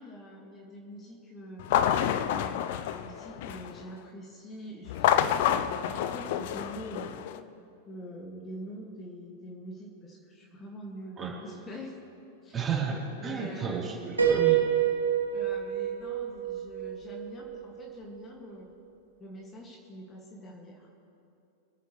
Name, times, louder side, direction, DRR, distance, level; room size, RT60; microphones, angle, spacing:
voice 1, 0.0-7.2 7.8-11.9 12.4-12.7 13.2-13.8 15.3-18.8 19.2-20.9, equal, 25° left, -1 dB, 2.1 m, -45 dB
sound 1, 1.6-3.8 4.9-7.4, left 10 dB, 55° left, 0.6 m, -28 dB
voice 2, 12.5-14.6, right 6 dB, 25° right, -4 dB, 3.7 m, -32 dB
Piano, 14.2-17.9, right 9 dB, 90° right, 1.4 m, -28 dB
26.5 x 9.3 x 3.3 m, 2.7 s
figure-of-eight pair, 95°, 0 cm